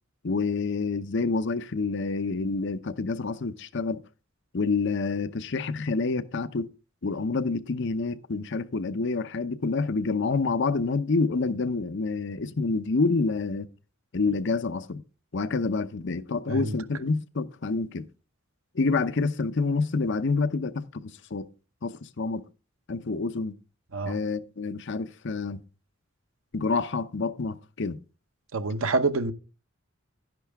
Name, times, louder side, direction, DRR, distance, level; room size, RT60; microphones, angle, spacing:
voice 1, 0.2-4.0 4.5-6.7 7.0-13.7 14.1-15.0 15.3-18.1 18.7-21.5 21.8-22.5 22.9-23.5 24.0-25.6 26.5-28.0, left 4 dB, 60° left, 0.7 m, -28 dB
voice 2, 28.5-29.3, right 3 dB, 75° right, 0.9 m, -26 dB
11.0 x 10.5 x 3.5 m
head